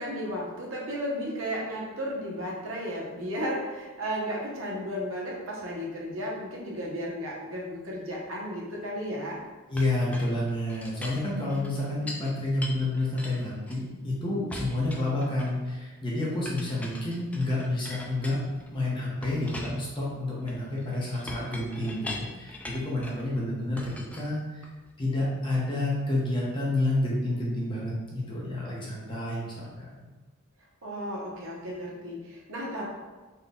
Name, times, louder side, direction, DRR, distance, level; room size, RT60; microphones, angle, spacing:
voice 1, 0.0-9.4 30.8-32.9, equal, 70° right, -3 dB, 0.9 m, -34 dB
voice 2, 9.7-18.4 18.7-24.4 25.0-30.0, left 2 dB, 25° left, -5 dB, 0.9 m, -29 dB
Chink clink, 9.8-12.3 12.6-14.1 14.5-15.7 16.5-18.8 19.2-23.3 23.8-24.9, left 1 dB, 5° left, 0.3 m, -42 dB
4.1 x 2.3 x 3.5 m, 1.2 s
head